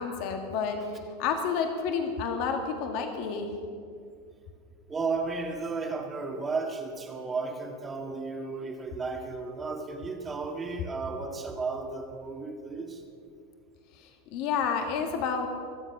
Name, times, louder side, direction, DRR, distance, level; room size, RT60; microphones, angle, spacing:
voice 1, 0.0-3.5 13.9-15.5, left 6 dB, 55° left, 5 dB, 1.7 m, -30 dB
voice 2, 4.9-13.0, right 4 dB, 20° right, 3 dB, 1.8 m, -34 dB
23.5 x 7.8 x 5.9 m, 2.3 s
hypercardioid pair, 105°, 0 cm